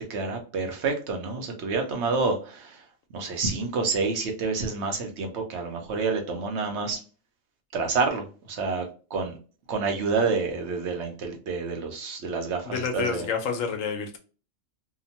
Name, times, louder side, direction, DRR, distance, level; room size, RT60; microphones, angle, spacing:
voice 1, 0.1-2.8 3.1-7.0 7.7-8.2 8.5-8.9 9.1-9.3 9.7-13.3, right 4 dB, 65° right, 4 dB, 0.9 m, -28 dB
voice 2, 12.6-14.2, left 5 dB, 80° left, 6 dB, 1.0 m, -29 dB
2.8 x 2.1 x 2.7 m, 0.37 s
omnidirectional pair, 1.4 m